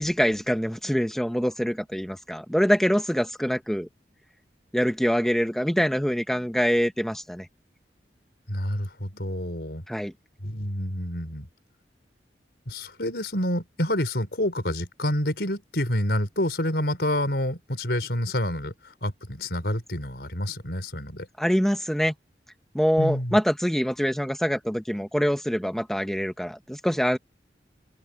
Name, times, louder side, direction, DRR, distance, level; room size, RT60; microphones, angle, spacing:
voice 1, 0.0-3.9 4.7-7.5 9.9-10.1 21.4-22.1 22.7-27.2, equal, ahead, 1.0 m, -24 dB
voice 2, 8.5-9.8 10.4-11.5 12.7-21.3 23.0-23.4, left 1 dB, 65° left, 5.0 m, -28 dB
open air
head